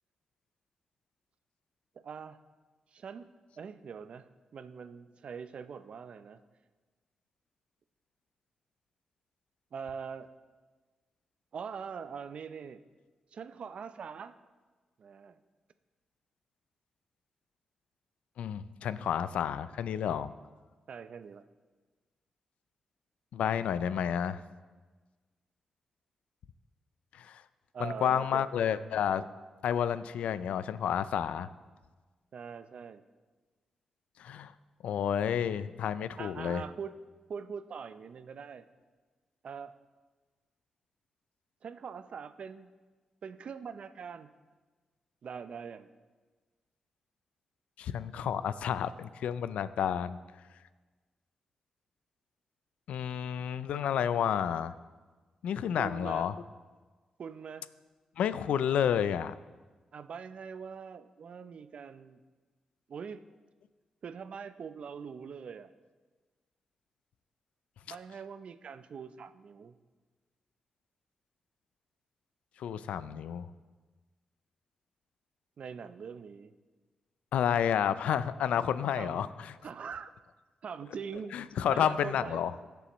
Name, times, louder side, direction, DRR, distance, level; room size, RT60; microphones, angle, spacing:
voice 1, 2.0-2.4 2.9-3.3 3.6-6.4 9.7-10.3 11.5-12.8 13.3-14.3 15.0-15.4 20.9-21.4 27.7-28.5 32.3-33.0 36.2-37.0 37.3-38.7 39.4-39.7 41.6-42.7 43.2-44.3 45.2-45.9 55.8-56.3 57.2-57.7 59.9-62.2 62.9-63.2 64.0-65.7 67.9-69.8 75.6-76.5 79.0-79.2 79.6-80.1 80.6-81.3 81.7-82.4, right 6 dB, 65° right, 12 dB, 0.5 m, -42 dB
voice 2, 18.4-20.3 23.3-24.4 27.2-27.4 27.8-29.2 29.6-31.5 34.2-34.5 34.8-36.6 47.8-50.2 52.9-54.7 55.4-56.3 58.2-59.3 72.6-73.5 77.3-79.5 81.3-82.5, left 9 dB, 85° left, 15 dB, 0.4 m, -30 dB
17.0 x 6.9 x 3.1 m, 1.3 s
supercardioid pair, 50°, 2 cm